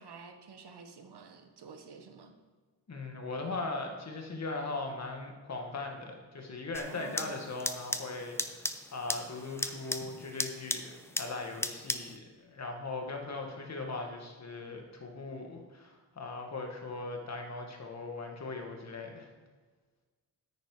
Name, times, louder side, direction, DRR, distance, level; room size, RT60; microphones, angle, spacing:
voice 1, 0.0-2.3 6.9-7.4, right 5 dB, 65° right, 5 dB, 1.3 m, -50 dB
voice 2, 2.9-8.6 8.9-19.3, left 3 dB, 35° left, 2 dB, 1.7 m, -39 dB
sound 1, 6.7-12.2, left 1 dB, 5° left, 0.5 m, -37 dB
9.2 x 9.1 x 4.9 m, 1.4 s
wide cardioid pair, 120°, 44 cm